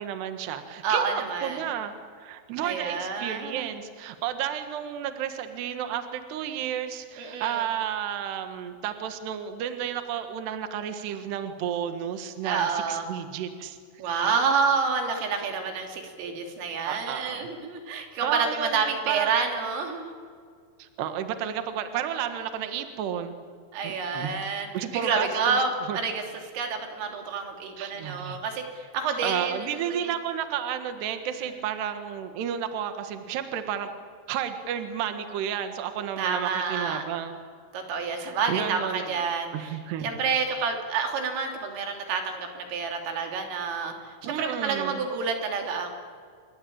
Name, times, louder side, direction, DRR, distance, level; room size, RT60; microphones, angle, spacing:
voice 1, 0.0-13.8 16.9-17.5 18.2-19.3 20.8-23.4 23.8-24.3 24.7-25.6 25.9-26.0 27.8-28.4 29.2-33.9 34.3-37.4 38.2-39.2 39.5-40.1 40.5-40.7 44.3-45.0, right 9 dB, 65° right, 7 dB, 3.4 m, -32 dB
voice 2, 0.8-1.6 2.6-3.7 7.2-7.7 12.4-13.1 14.0-20.1 23.7-24.7 24.9-26.2 26.5-30.1 36.2-37.0 37.7-45.9, right 5 dB, 85° right, 3 dB, 5.7 m, -29 dB
28.0 x 22.5 x 8.8 m, 2.1 s
omnidirectional pair, 5.7 m